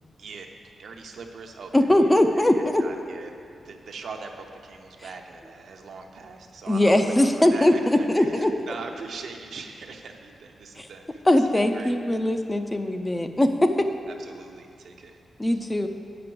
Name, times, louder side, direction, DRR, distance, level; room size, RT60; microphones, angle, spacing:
voice 1, 0.8-3.3 3.6-11.2 11.5-11.9 14.3-15.2 15.5-15.6, right 4 dB, 65° right, 3 dB, 0.8 m, -41 dB
voice 2, 1.7-2.8 5.0-5.1 6.7-8.5 10.8-10.9 11.3-13.9 15.4-15.9, left 1 dB, 10° left, 6 dB, 0.4 m, -21 dB
7.6 x 5.9 x 7.6 m, 2.4 s
wide cardioid pair, 160°, 0 cm